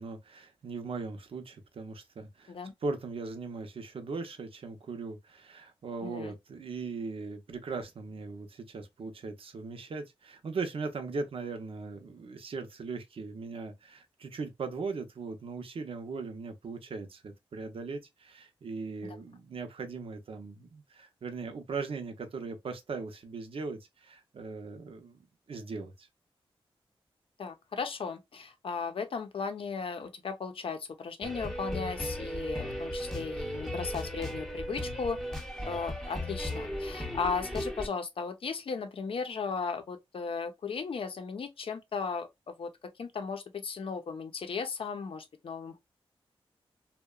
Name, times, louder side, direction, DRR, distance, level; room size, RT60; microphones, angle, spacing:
voice 1, 0.0-2.5 2.8-25.2 25.5-26.1, right 4 dB, 65° right, 0.6 m, -39 dB
voice 2, 6.0-6.3 19.0-19.2 27.4-35.2 35.6-42.7 43.0-45.8, left 5 dB, 65° left, 0.6 m, -36 dB
sound 1, 31.2-37.9, equal, 5° left, 0.6 m, -36 dB
2.7 x 2.1 x 2.3 m
cardioid pair, 75°, 10 cm